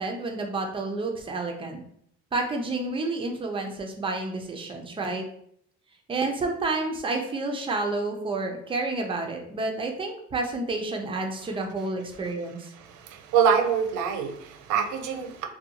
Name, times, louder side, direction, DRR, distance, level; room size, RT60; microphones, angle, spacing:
voice 1, 0.0-1.8 2.3-5.2 6.1-12.6, right 3 dB, 15° right, 3 dB, 0.4 m, -30 dB
voice 2, 12.9-15.5, right 7 dB, 70° right, 5 dB, 0.5 m, -25 dB
2.6 x 2.2 x 2.8 m, 0.69 s
cardioid pair, 115°, 31 cm